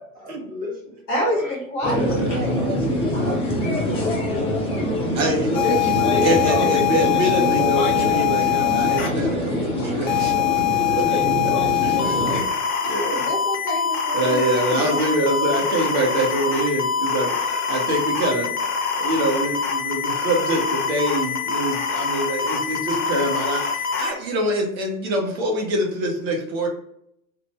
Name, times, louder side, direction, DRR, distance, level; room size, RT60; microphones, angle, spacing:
voice 1, 0.0-1.4 3.2-5.2 5.8-6.2 6.4-6.7, equal, 20° right, -4 dB, 1.3 m, -36 dB
voice 2, 1.1-2.6 12.8-15.1, equal, 30° left, -3 dB, 0.9 m, -28 dB
sound 1, 1.8-12.4, equal, 15° left, 0.5 m, -24 dB
voice 3, 1.8-2.8 5.1-5.5 6.2-11.5 11.8-12.2 12.8-13.3 14.1-18.5 18.9-26.7, right 1 dB, 50° right, 0 dB, 1.0 m, -25 dB
sound 2, 5.5-9.1 10.1-24.1, left 8 dB, 60° left, 0.7 m, -24 dB
2.6 x 2.5 x 3.0 m, 0.73 s
figure-of-eight pair, 85°, 42 cm